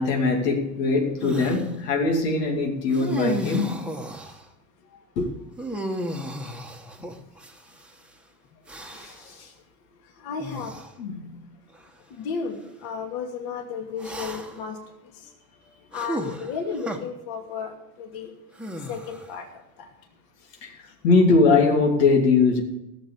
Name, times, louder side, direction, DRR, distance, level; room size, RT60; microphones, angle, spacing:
voice 1, 0.0-3.8 5.2-5.3 7.0-7.1 8.9-9.5 11.0-11.4 20.6-22.6, left 3 dB, 75° left, 2.7 m, -22 dB
sound 1, 1.2-1.7 2.9-4.4 5.6-7.9 8.7-9.3 10.4-10.9 11.7-11.9 14.0-14.7 15.9-17.0 18.6-19.4, right 1 dB, ahead, 1.4 m, -34 dB
voice 2, 10.2-10.7 12.1-14.8 15.9-18.3 18.9-19.5 19.8-19.9, left 5 dB, 45° left, 2.6 m, -33 dB
16.0 x 7.3 x 6.9 m
hypercardioid pair, 100°, 48 cm